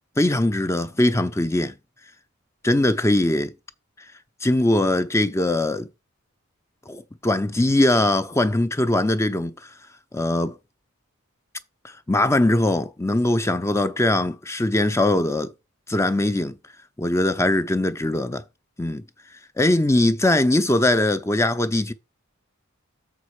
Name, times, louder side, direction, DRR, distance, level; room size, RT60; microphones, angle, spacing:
voice 1, 0.2-1.7 2.6-3.5 4.4-5.9 6.9-9.5 10.1-10.5 12.1-15.5 15.9-16.6 17.0-18.4 18.8-19.0 19.6-21.9, left 1 dB, 15° left, 0.5 m, -21 dB
7.1 x 5.3 x 4.7 m
head